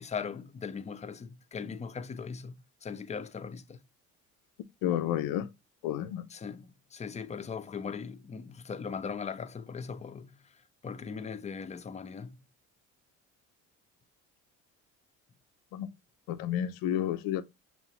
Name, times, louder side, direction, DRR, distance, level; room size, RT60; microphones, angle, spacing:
voice 1, 0.0-2.6 2.8-3.8 6.3-12.4, left 6 dB, 20° left, 0.4 m, -39 dB
voice 2, 4.8-5.5 5.8-6.3 15.7-15.9 16.3-17.4, left 11 dB, 75° left, 0.5 m, -30 dB
5.5 x 2.2 x 2.8 m
supercardioid pair, 75°, 35 cm